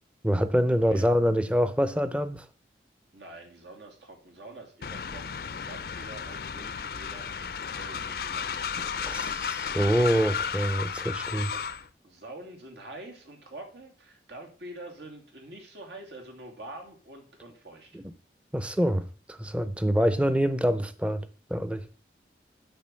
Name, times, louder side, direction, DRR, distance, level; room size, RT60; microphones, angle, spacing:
voice 1, 0.2-2.4 9.0-11.5 18.5-21.3 21.5-21.8, equal, 5° right, 0.6 m, -25 dB
voice 2, 0.8-1.1 3.1-9.5 11.5-11.7 12.0-18.0, right 2 dB, 80° right, 2.7 m, -46 dB
Train, 4.8-11.9, left 6 dB, 55° left, 0.5 m, -34 dB
8.9 x 4.5 x 7.5 m
head